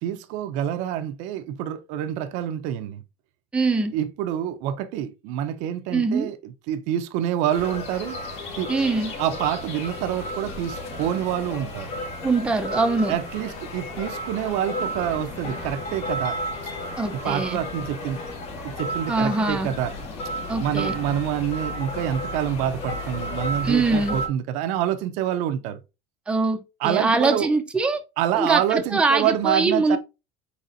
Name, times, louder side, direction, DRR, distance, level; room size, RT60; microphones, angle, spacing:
voice 1, 0.0-3.0 3.9-8.2 8.6-8.7 9.2-11.9 13.1-16.4 17.2-18.2 18.6-19.9 20.6-25.8 26.8-27.5 28.2-30.0, right 10 dB, 65° right, 0.5 m, -27 dB
voice 2, 3.5-4.0 5.9-6.3 8.7-9.1 12.2-13.2 17.0-17.6 19.1-19.7 20.5-20.9 23.6-24.2 26.3-28.0 28.4-30.0, right 3 dB, 10° right, 0.5 m, -23 dB
sound 1, 7.5-24.3, left 1 dB, 55° left, 1.2 m, -33 dB
4.1 x 4.1 x 2.5 m
supercardioid pair, 130°, 13 cm